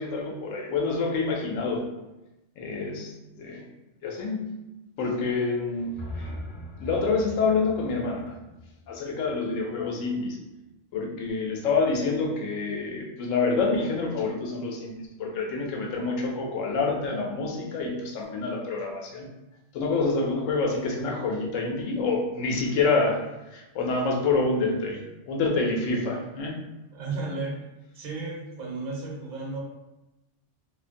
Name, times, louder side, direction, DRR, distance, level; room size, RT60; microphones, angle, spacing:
voice 1, 0.0-1.9 2.6-3.7 4.0-4.6 5.0-6.0 6.8-8.4 8.9-10.4 10.9-19.3 19.7-26.6, left 3 dB, 90° left, 0 dB, 0.9 m, -27 dB
sound 1, 5.7-9.8, left 1 dB, 55° left, 0.5 m, -41 dB
voice 2, 26.9-27.6 27.9-29.6, right 3 dB, 50° right, -3 dB, 0.7 m, -34 dB
2.4 x 2.1 x 2.5 m, 0.97 s
omnidirectional pair, 1.3 m